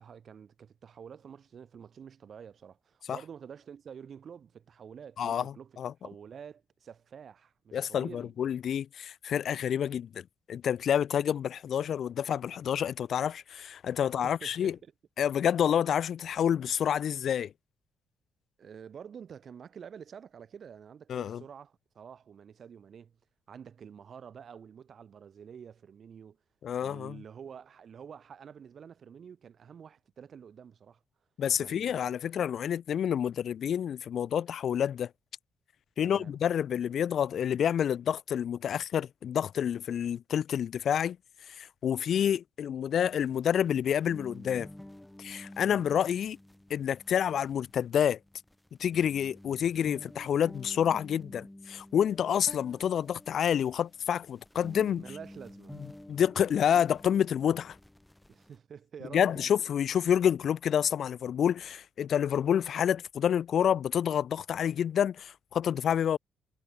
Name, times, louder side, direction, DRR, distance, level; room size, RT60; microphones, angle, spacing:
voice 1, 0.0-5.8 6.0-8.3 14.0-14.9 18.6-23.2 23.5-26.4 26.8-31.0 31.6-32.2 36.0-36.4 45.6-45.9 55.0-55.8 58.3-59.5, right 7 dB, 50° right, 5.8 m, -48 dB
voice 2, 5.2-5.9 7.7-14.7 15.2-17.5 21.1-21.4 26.6-27.2 31.4-35.1 36.0-41.2 41.5-44.7 45.2-46.4 46.7-48.2 48.8-55.0 56.1-57.8 59.1-66.2, left 9 dB, 60° left, 0.7 m, -28 dB
sound 1, 42.9-58.6, left 1 dB, 5° left, 7.9 m, -50 dB
cardioid pair, 90°, 0 cm